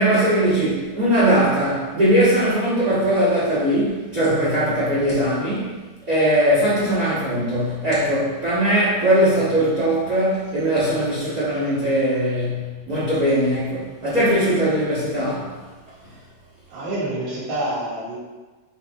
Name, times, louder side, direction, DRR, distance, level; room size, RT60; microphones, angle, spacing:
voice 1, 0.0-5.8 6.1-15.5, right 1 dB, 50° right, -11 dB, 1.1 m, -20 dB
voice 2, 16.7-18.2, right 1 dB, 80° right, -7 dB, 3.9 m, -27 dB
8.1 x 2.9 x 4.7 m, 1.3 s
omnidirectional pair, 4.8 m